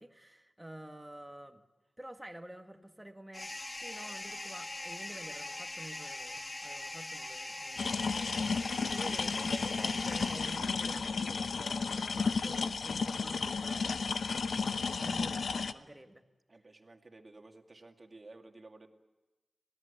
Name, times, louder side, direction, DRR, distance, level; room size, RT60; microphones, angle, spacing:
voice 1, 0.0-1.6 2.0-14.2 14.5-16.2, right 1 dB, 10° right, 5 dB, 1.8 m, -49 dB
sound 1, 3.3-11.1, left 2 dB, 25° left, 0.9 m, -42 dB
sound 2, 7.8-15.7, left 5 dB, 80° left, 0.8 m, -33 dB
voice 2, 8.9-9.2 16.5-18.9, right 2 dB, 35° right, 4 dB, 2.3 m, -54 dB
26.0 x 17.5 x 8.3 m, 1.1 s
wide cardioid pair, 85°, 0 cm